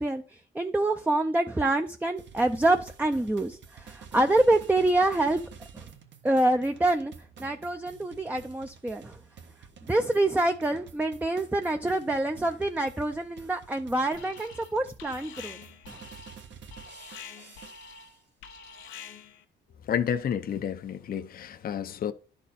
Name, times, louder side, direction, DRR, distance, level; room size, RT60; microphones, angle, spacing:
voice 1, 0.0-5.4 5.7-5.9 6.2-7.1 7.4-9.2 9.9-15.6 15.9-16.0, right 2 dB, 10° right, 0.6 m, -26 dB
sound 1, 2.2-18.1, right 6 dB, 65° right, 1.4 m, -50 dB
Alarm, 14.1-14.7 15.0-19.4, left 6 dB, 90° left, 1.1 m, -46 dB
voice 2, 19.9-22.1, left 8 dB, 50° left, 0.6 m, -30 dB
11.0 x 4.3 x 4.2 m
cardioid pair, 90°, 20 cm